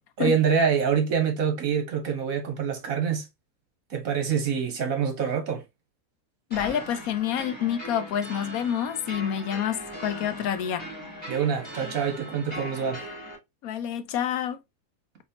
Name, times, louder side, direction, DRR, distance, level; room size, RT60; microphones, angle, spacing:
voice 1, 0.2-3.3 3.9-5.6 11.3-13.0, right 6 dB, 70° right, 1.6 m, -25 dB
voice 2, 6.5-10.9 13.6-14.6, left 9 dB, 80° left, 1.1 m, -28 dB
sound 1, 6.5-13.4, equal, 5° left, 2.6 m, -39 dB
4.1 x 3.4 x 2.7 m
omnidirectional pair, 1.5 m